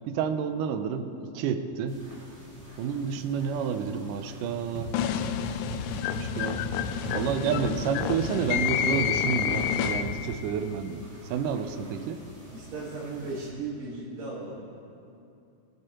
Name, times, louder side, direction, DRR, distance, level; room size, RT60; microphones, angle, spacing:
voice 1, 0.1-2.0 2.8-4.9 6.2-6.6 7.1-11.0 11.3-12.2, right 7 dB, 80° right, 8 dB, 2.1 m, -30 dB
sound 1, 1.9-13.5, right 1 dB, 5° left, 2.1 m, -49 dB
sound 2, 4.7-10.3, left 1 dB, 70° left, 1.1 m, -36 dB
sound 3, 4.9-10.4, left 9 dB, 85° left, 2.2 m, -29 dB
voice 2, 12.5-14.6, right 3 dB, 55° right, -8 dB, 2.8 m, -36 dB
22.0 x 8.9 x 3.0 m, 2.6 s
omnidirectional pair, 3.9 m